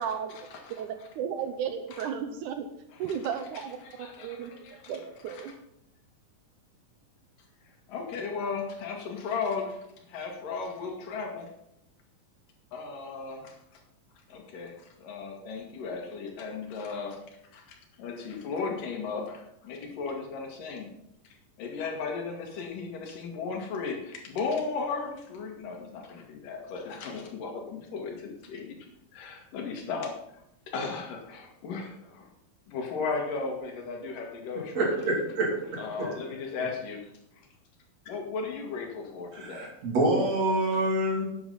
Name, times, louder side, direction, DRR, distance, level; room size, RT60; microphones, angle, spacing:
voice 1, 0.0-0.3 0.8-2.7 3.0-4.5 4.9-5.5, right 8 dB, 75° right, 8 dB, 2.1 m, -34 dB
voice 2, 3.8-4.9 5.3-5.5 7.9-9.8 10.1-11.5 12.7-13.8 14.3-17.2 17.5-20.9 21.6-28.8 29.1-32.3 32.7-35.1 35.8-37.1 38.1-39.7, left 4 dB, 75° left, 2 dB, 3.4 m, -36 dB
voice 3, 34.8-35.5 36.0-36.1 39.3-41.3, right 1 dB, 50° right, -1 dB, 3.8 m, -26 dB
12.0 x 9.1 x 5.6 m, 0.80 s
omnidirectional pair, 3.9 m